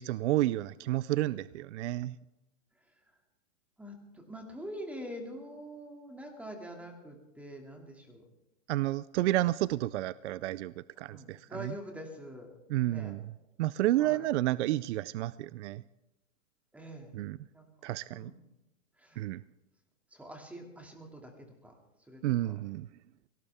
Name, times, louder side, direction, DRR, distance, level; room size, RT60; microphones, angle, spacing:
voice 1, 0.0-2.2 8.7-11.4 12.7-13.2 13.6-15.8 17.1-17.4 17.8-18.3 19.2-19.4 22.2-22.9, right 15 dB, 65° right, 18 dB, 0.5 m, -30 dB
voice 2, 3.8-8.2 11.0-12.5 12.9-13.2 14.0-14.2 16.7-17.1 17.5-17.6 18.1-18.4 19.0-19.2 20.1-21.8 22.1-22.6, equal, 5° right, 2 dB, 2.5 m, -45 dB
22.0 x 18.0 x 3.6 m, 0.95 s
hypercardioid pair, 145°, 39 cm